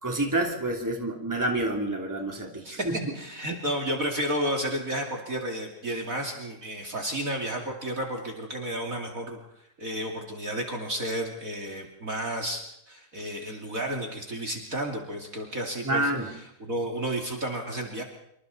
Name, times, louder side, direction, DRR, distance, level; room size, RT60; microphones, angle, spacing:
voice 1, 0.0-3.0 15.8-16.4, right 1 dB, 10° right, 1 dB, 3.0 m, -28 dB
voice 2, 2.6-9.4 9.8-16.1 16.6-18.0, right 1 dB, 40° right, 3 dB, 3.0 m, -32 dB
27.0 x 25.0 x 4.2 m, 0.77 s
omnidirectional pair, 2.4 m